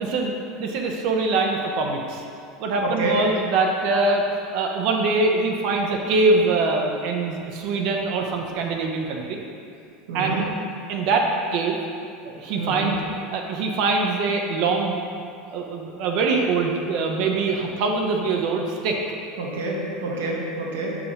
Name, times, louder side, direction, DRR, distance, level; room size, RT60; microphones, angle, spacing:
voice 1, 0.0-2.2 2.6-4.2 4.5-9.4 10.1-10.4 10.9-11.8 12.2-13.0 13.3-15.0 15.5-19.0, right 3 dB, 65° right, 1 dB, 0.8 m, -23 dB
voice 2, 2.8-3.2 10.1-10.4 12.5-12.9 19.4-21.0, right 2 dB, 85° right, -2 dB, 1.4 m, -27 dB
5.5 x 4.8 x 5.1 m, 2.5 s
supercardioid pair, 100°, 0 cm